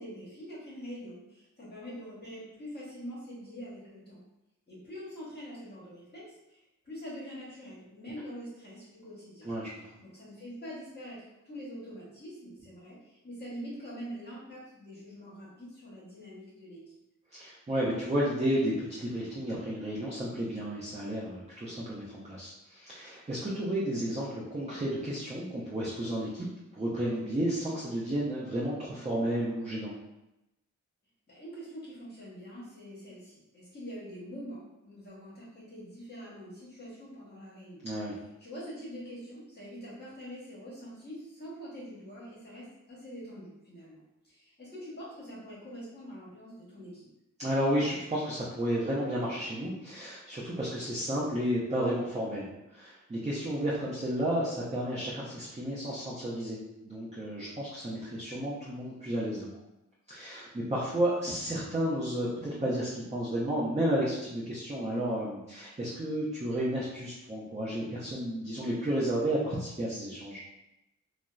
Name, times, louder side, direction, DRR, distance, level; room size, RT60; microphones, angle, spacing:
voice 1, 0.0-4.2 4.7-9.5 10.0-16.9 31.3-37.9 38.4-47.1, equal, 35° left, -8 dB, 1.0 m, -44 dB
voice 2, 17.3-26.5 26.7-29.9 37.8-38.2 47.4-52.5 52.7-56.6 56.8-59.5 60.1-70.4, right 1 dB, 20° right, -7 dB, 0.6 m, -32 dB
2.7 x 2.0 x 2.3 m, 0.93 s
cardioid pair, 45°, 31 cm